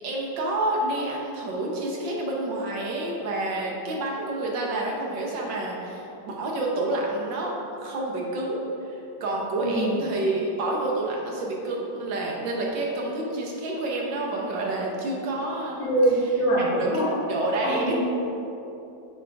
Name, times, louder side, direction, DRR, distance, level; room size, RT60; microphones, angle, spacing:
voice 1, 0.0-15.9 16.8-17.9, right 2 dB, 75° right, -2 dB, 1.7 m, -29 dB
voice 2, 9.6-9.9 15.8-17.1 17.6-17.9, right 1 dB, 90° left, -8 dB, 2.2 m, -23 dB
8.8 x 4.4 x 3.6 m, 2.8 s
omnidirectional pair, 2.0 m